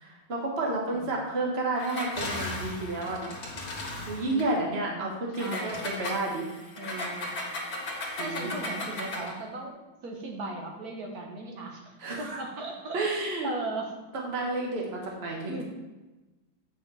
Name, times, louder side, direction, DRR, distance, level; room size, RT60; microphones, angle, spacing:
voice 1, 0.0-3.3 4.1-6.4 8.2-8.5 12.0-12.4 12.9-13.5 14.2-15.6, right 2 dB, 35° right, -1 dB, 1.5 m, -31 dB
Engine, 1.8-4.5 5.3-9.4, left 1 dB, 85° left, 2.5 m, -36 dB
voice 2, 5.4-5.8 6.8-7.3 8.2-9.7 10.0-13.0 13.4-13.9 15.5-15.6, right 2 dB, 55° right, 1 dB, 1.7 m, -37 dB
9.0 x 5.9 x 4.2 m, 1.1 s
omnidirectional pair, 2.1 m